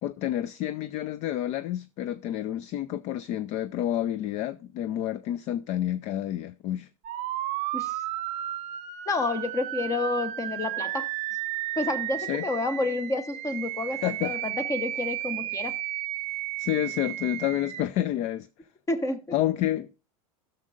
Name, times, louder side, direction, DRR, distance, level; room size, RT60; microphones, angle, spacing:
voice 1, 0.0-6.9 12.2-12.4 13.9-14.4 16.6-18.5 19.3-19.9, left 12 dB, 40° left, 0.4 m, -29 dB
sound 1, 7.0-17.8, right 14 dB, 40° right, 0.8 m, -33 dB
voice 2, 9.1-11.1 11.8-15.8 18.9-19.2, left 2 dB, 15° left, 1.0 m, -29 dB
15.5 x 6.5 x 2.4 m
supercardioid pair, 130°, 18 cm